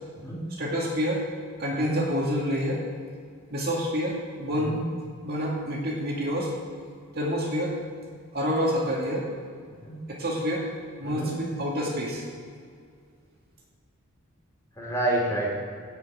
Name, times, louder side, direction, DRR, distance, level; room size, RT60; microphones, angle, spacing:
voice 1, 0.6-1.3 1.6-2.9 3.5-4.8 5.2-6.5 7.1-9.3 10.1-10.7 11.0-12.3, equal, 45° right, -2 dB, 2.4 m, -28 dB
voice 2, 14.8-15.5, right 1 dB, 15° left, -4 dB, 3.5 m, -28 dB
15.5 x 5.8 x 8.5 m, 2.1 s
head